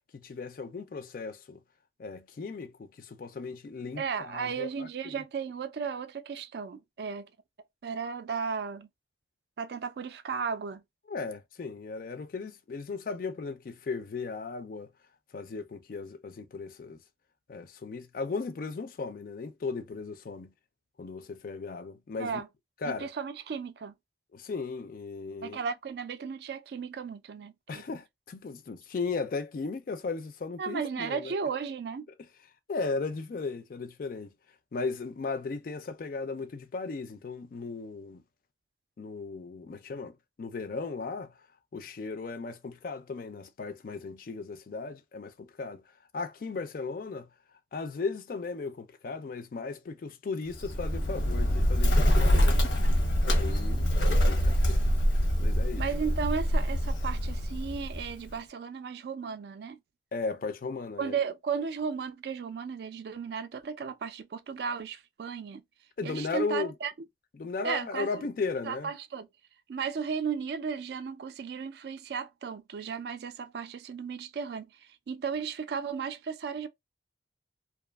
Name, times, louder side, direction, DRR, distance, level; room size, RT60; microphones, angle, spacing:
voice 1, 0.1-1.6 2.0-5.2 11.1-14.9 15.3-17.0 17.5-20.5 21.0-22.4 22.8-23.1 24.3-25.6 27.7-31.4 32.7-34.3 34.7-38.2 39.0-41.4 41.7-45.8 46.1-47.3 47.7-52.7 53.2-55.0 55.4-55.8 60.1-61.1 66.0-66.7 67.4-68.9, left 4 dB, 50° left, 0.3 m, -36 dB
voice 2, 4.0-7.3 7.8-8.9 9.6-10.8 22.2-22.5 22.9-23.9 25.4-27.8 30.6-32.1 55.8-59.8 61.0-65.6 66.0-66.9 67.6-68.2 68.6-69.3 69.7-74.7 75.1-76.7, right 6 dB, 60° right, 0.3 m, -35 dB
Bird, 50.5-58.3, equal, 85° left, 0.8 m, -25 dB
2.6 x 2.3 x 2.2 m
head